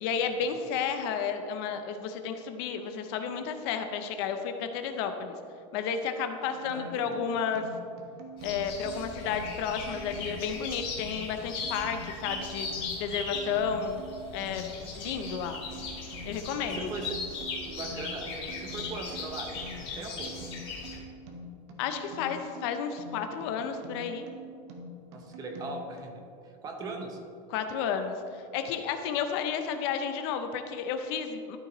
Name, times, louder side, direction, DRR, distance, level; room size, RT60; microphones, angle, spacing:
voice 1, 0.0-5.3 5.7-7.6 8.4-12.7 13.0-14.0 14.3-15.6 16.2-16.8 21.8-24.3 27.5-28.1 28.5-31.6, left 7 dB, 50° left, 7 dB, 0.5 m, -32 dB
sound 1, 6.5-26.0, equal, 55° right, 1.1 m, -45 dB
voice 2, 6.6-7.2 16.6-17.2 17.6-20.3 25.1-27.2, right 3 dB, 20° right, 4 dB, 0.7 m, -40 dB
sound 2, 8.4-21.0, left 4 dB, 30° left, 1.6 m, -38 dB
12.5 x 5.1 x 3.0 m, 2.5 s
supercardioid pair, 175°, 17 cm